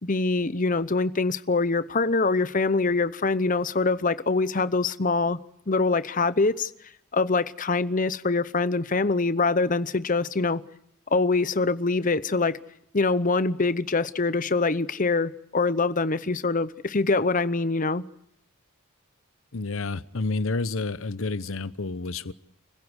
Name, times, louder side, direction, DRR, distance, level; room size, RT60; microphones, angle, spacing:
voice 1, 0.0-5.4 5.7-6.7 7.1-10.6 11.1-12.6 12.9-18.0, left 3 dB, 35° left, 0.8 m, -24 dB
voice 2, 19.5-22.3, left 3 dB, 65° left, 0.9 m, -29 dB
29.5 x 16.0 x 8.1 m
head